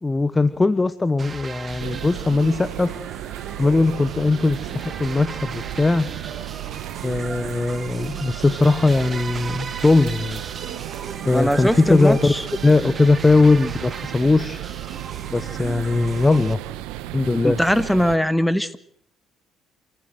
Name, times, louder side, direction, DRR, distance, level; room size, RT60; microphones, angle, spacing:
voice 1, 0.0-3.0 3.6-6.1 7.0-10.4 11.2-12.3 12.6-14.6 15.3-16.6 17.1-17.6, left 3 dB, 20° left, 15 dB, 1.1 m, -19 dB
sound 1, 1.2-16.5, right 5 dB, 40° right, 1.5 m, -37 dB
sound 2, 1.8-18.2, right 15 dB, 85° right, 1.3 m, -34 dB
voice 2, 11.3-12.4 17.4-18.8, equal, 5° left, 14 dB, 1.6 m, -20 dB
27.5 x 14.5 x 7.9 m, 0.67 s
supercardioid pair, 75°, 0 cm